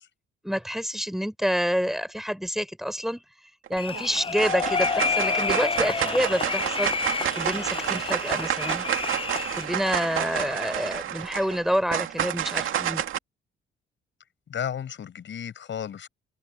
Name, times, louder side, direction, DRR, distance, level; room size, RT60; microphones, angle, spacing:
voice 1, 0.4-3.2 3.7-6.9 7.4-8.9 9.6-13.0, equal, ahead, 4.6 m, -28 dB
sound 1, 3.7-4.0 4.4-13.2, right 11 dB, 70° right, 2.3 m, -29 dB
sound 2, 3.8-9.6, left 5 dB, 25° left, 0.6 m, -29 dB
voice 2, 14.5-16.1, left 8 dB, 60° left, 7.7 m, -33 dB
supercardioid pair, 70°, 21 cm